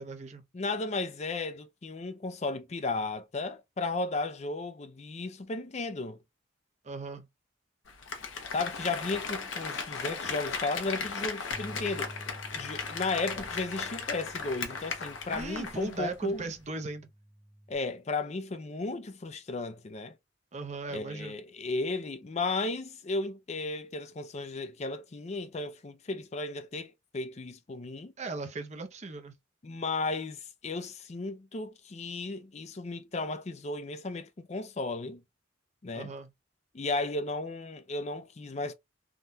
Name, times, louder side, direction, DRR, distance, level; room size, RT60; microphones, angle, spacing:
voice 1, 0.0-0.4 6.8-7.3 15.3-17.1 20.5-21.4 28.2-29.3 35.9-36.3, right 3 dB, 35° right, 0.6 m, -38 dB
voice 2, 0.5-6.2 8.5-12.2 12.5-16.4 17.7-20.1 20.9-28.1 29.6-35.2 35.8-36.1 36.7-38.7, left 3 dB, 35° left, 0.4 m, -34 dB
Applause, 7.9-16.1 16.4-16.5, left 5 dB, 75° left, 0.9 m, -37 dB
Bass guitar, 11.5-17.8, equal, 10° right, 0.9 m, -50 dB
3.5 x 2.3 x 2.6 m
head